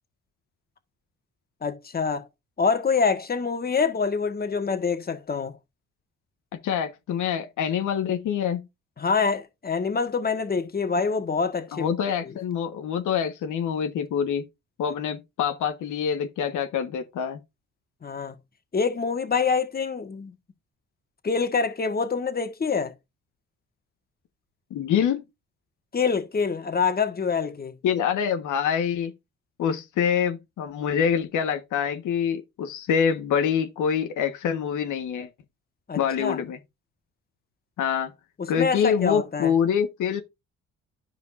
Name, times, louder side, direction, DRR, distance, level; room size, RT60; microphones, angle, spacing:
voice 1, 1.6-2.3 2.6-5.5 9.0-11.9 18.0-18.3 18.7-20.4 21.2-22.9 25.9-27.7 35.9-36.4 38.4-39.5, left 5 dB, 30° left, 1.6 m, -26 dB
voice 2, 6.6-8.7 11.7-14.4 14.8-17.4 24.7-25.2 27.8-29.1 29.6-35.3 35.9-36.6 37.8-38.1 38.5-40.2, left 8 dB, 80° left, 1.4 m, -25 dB
12.5 x 5.2 x 2.5 m
cardioid pair, 90°, 30 cm